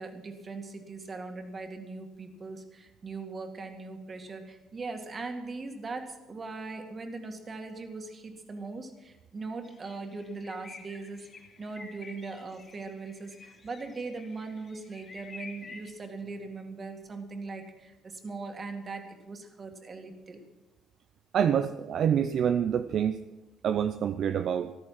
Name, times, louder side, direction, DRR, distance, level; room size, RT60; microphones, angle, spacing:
voice 1, 0.0-20.4, right 3 dB, 30° right, 5 dB, 2.1 m, -40 dB
sound 1, 9.6-15.9, left 4 dB, 35° left, 3.5 m, -50 dB
voice 2, 21.3-23.2 23.6-24.8, right 8 dB, 55° right, 9 dB, 0.5 m, -26 dB
14.5 x 13.0 x 5.9 m, 1.1 s
cardioid pair, 125°, 0 cm